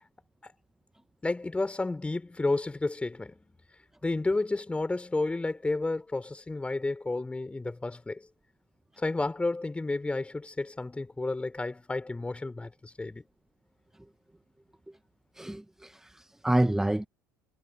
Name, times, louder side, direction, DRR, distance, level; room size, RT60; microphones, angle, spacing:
voice 1, 1.2-3.5 4.0-8.2 9.0-13.2, left 2 dB, 10° left, 4.1 m, -31 dB
voice 2, 15.3-17.1, right 1 dB, 5° right, 1.7 m, -28 dB
figure-of-eight pair, 65°, 9 cm